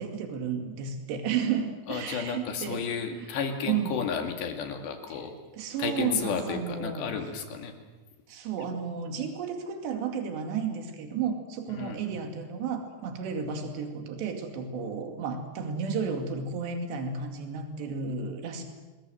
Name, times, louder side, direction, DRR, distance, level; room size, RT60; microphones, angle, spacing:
voice 1, 0.0-2.8 3.1-3.3 3.7-4.0 5.1-5.2 5.5-7.1 8.3-18.6, right 6 dB, 85° right, 4 dB, 4.6 m, -32 dB
voice 2, 1.9-5.3 5.8-7.8 11.7-12.0, left 6 dB, 80° left, 4 dB, 4.5 m, -32 dB
28.0 x 21.5 x 7.8 m, 1.3 s
omnidirectional pair, 4.9 m